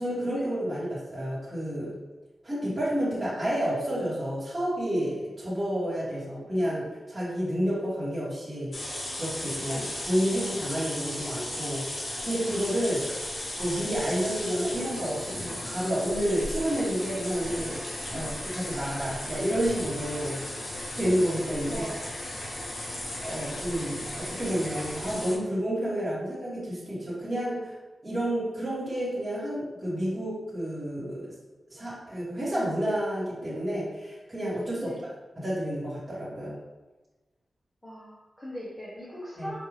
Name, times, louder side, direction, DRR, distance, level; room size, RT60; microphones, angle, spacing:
voice 1, 0.0-2.0 2.4-8.7 9.1-13.0 13.6-17.8 18.1-20.4 20.9-21.9 23.2-27.7 28.0-31.3 31.7-34.9 35.4-36.6 39.4-39.5, equal, 20° right, -11 dB, 1.3 m, -30 dB
sound 1, 8.7-25.4, left 1 dB, 50° left, 0.8 m, -36 dB
voice 2, 21.7-22.1 22.4-22.6 34.8-35.0 37.8-39.6, left 1 dB, 10° left, -8 dB, 0.8 m, -41 dB
5.0 x 2.6 x 3.2 m, 1.2 s
wide cardioid pair, 135°, 0 cm